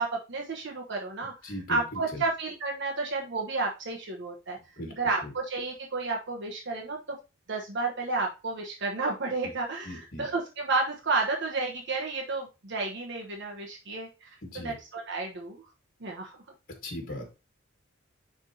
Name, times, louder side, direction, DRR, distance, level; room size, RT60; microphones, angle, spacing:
voice 1, 0.0-4.6 5.0-7.2 7.5-15.7 16.0-16.4, right 3 dB, 60° right, 0 dB, 1.1 m, -31 dB
voice 2, 1.4-2.2 4.8-4.9 5.2-5.3 9.4-9.5 9.8-10.3 14.4-14.7 16.8-17.2, left 1 dB, 50° left, 2 dB, 1.5 m, -38 dB
10.0 x 3.6 x 2.8 m, 0.28 s
head